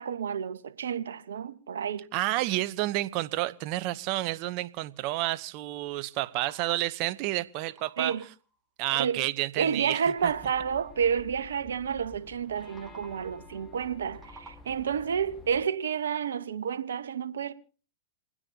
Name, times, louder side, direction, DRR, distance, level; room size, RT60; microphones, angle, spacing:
voice 1, 0.0-2.0 8.0-8.2 9.0-9.2 9.6-17.5, right 7 dB, 80° right, 1.0 m, -30 dB
voice 2, 2.1-8.1 8.8-10.3, right 17 dB, 50° right, 0.8 m, -30 dB
sound 1, 6.1-7.1 7.4-8.6 12.5-13.4 13.9-15.0, right 4 dB, 15° right, 1.9 m, -53 dB
sound 2, 10.2-15.6, left 4 dB, 20° left, 1.7 m, -50 dB
28.5 x 9.8 x 2.8 m
hypercardioid pair, 110°, 0 cm